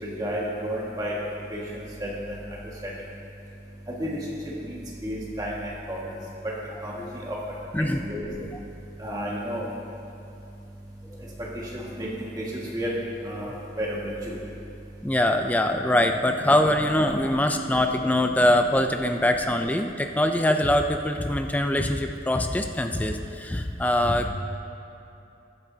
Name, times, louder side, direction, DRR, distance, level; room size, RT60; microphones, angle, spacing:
voice 1, 0.0-1.1 1.5-1.6 2.0-2.1 2.8-2.9 4.0-4.2 4.6-4.8 5.0-5.5 5.9-6.1 6.8-7.4 8.0-8.5 9.0-9.7 11.7-12.1 12.4-12.9 13.2-14.3 16.0-16.6 17.0-17.1 24.0-24.1, equal, 20° right, -5 dB, 1.7 m, -32 dB
voice 2, 15.0-24.3, left 1 dB, 10° left, 6 dB, 0.3 m, -23 dB
14.0 x 11.0 x 2.8 m, 2.8 s
head